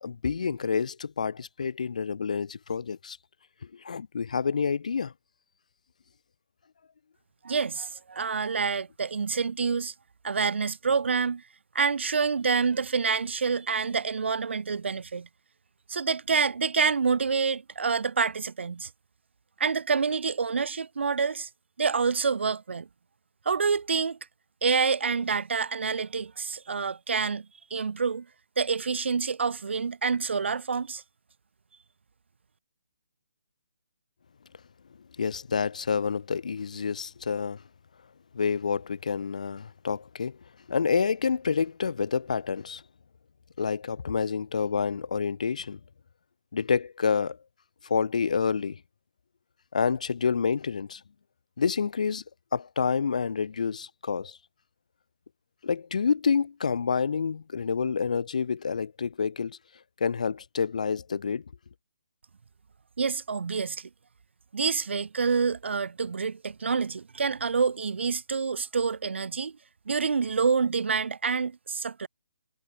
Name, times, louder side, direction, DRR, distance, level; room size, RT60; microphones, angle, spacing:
voice 1, 0.0-3.2 3.7-5.1 35.2-37.6 38.3-40.4 40.7-42.8 43.6-45.8 46.5-47.4 47.8-48.8 49.7-51.0 51.6-52.2 52.5-54.4 55.6-59.6 60.0-61.4, left 6 dB, 35° left, 0.4 m, -28 dB
voice 2, 7.4-9.9 10.2-11.4 11.7-15.3 15.9-18.9 19.6-21.5 21.8-22.9 23.5-24.2 24.6-27.5 27.7-28.3 28.6-31.0 63.0-63.9 64.5-69.6 69.9-72.1, right 5 dB, 70° right, 0.5 m, -27 dB
hypercardioid pair, 180°, 7 cm